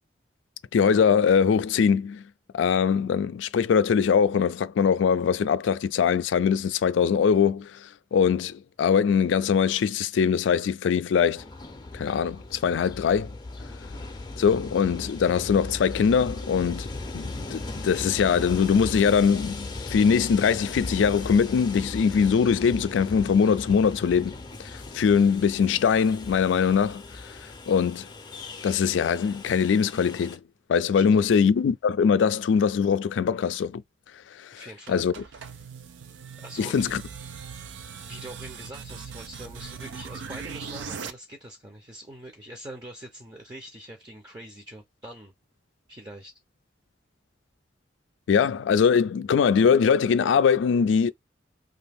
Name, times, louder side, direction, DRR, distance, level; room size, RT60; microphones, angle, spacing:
voice 1, 0.7-2.2 2.5-11.4 11.9-13.3 14.4-24.3 24.7-27.0 27.7-28.1 28.6-30.4 30.7-33.8 34.4-34.6 34.9-35.1 36.6-37.0 48.3-51.1, left 6 dB, 90° left, 0.3 m, -22 dB
Train, 11.3-30.4, left 2 dB, 25° left, 0.6 m, -38 dB
voice 2, 30.9-31.3 34.5-35.7 36.4-36.9 37.9-45.3 45.9-46.3, right 1 dB, 20° right, 0.6 m, -44 dB
sound 1, 34.9-41.1, right 6 dB, 85° right, 0.4 m, -40 dB
2.6 x 2.3 x 3.4 m
head